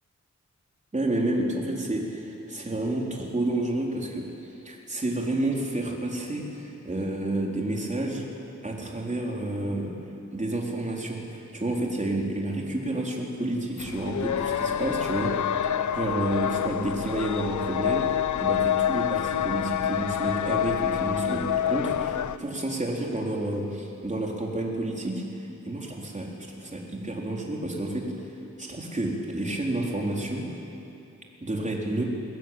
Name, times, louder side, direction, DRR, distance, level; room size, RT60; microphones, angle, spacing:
voice 1, 0.9-4.3 4.6-8.2 8.6-9.9 10.3-15.3 15.6-18.1 18.4-25.2 25.6-26.3 26.6-28.1 28.6-30.5 31.4-32.0, right 1 dB, 25° right, -1 dB, 4.1 m, -30 dB
sound 1, 13.8-22.4, left 10 dB, 85° left, 0.6 m, -27 dB
21.5 x 21.0 x 9.2 m, 2.8 s
wide cardioid pair, 105°, 29 cm